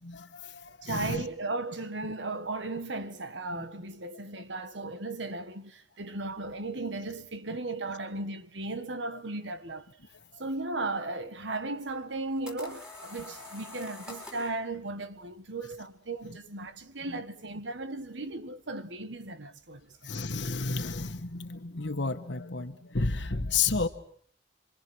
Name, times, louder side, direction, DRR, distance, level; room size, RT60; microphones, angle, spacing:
voice 1, 0.0-1.2 20.1-23.9, left 4 dB, 75° left, 1.4 m, -31 dB
voice 2, 0.8-9.9 10.4-20.1, right 2 dB, 80° right, 1.6 m, -36 dB
sound 1, 12.0-14.6, left 2 dB, 5° right, 4.5 m, -45 dB
27.5 x 24.5 x 6.3 m
head